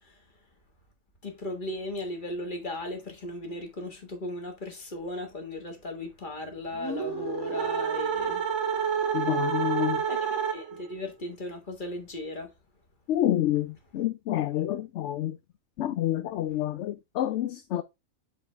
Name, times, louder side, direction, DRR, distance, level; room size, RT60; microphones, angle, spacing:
voice 1, 1.2-8.4 10.1-12.5, left 2 dB, 35° left, 1.8 m, -36 dB
sound 1, 6.7-10.9, right 7 dB, 60° right, 1.6 m, -29 dB
voice 2, 9.1-10.0 13.1-15.4 15.8-17.8, left 12 dB, 65° left, 0.8 m, -28 dB
7.6 x 4.0 x 3.2 m
omnidirectional pair, 1.4 m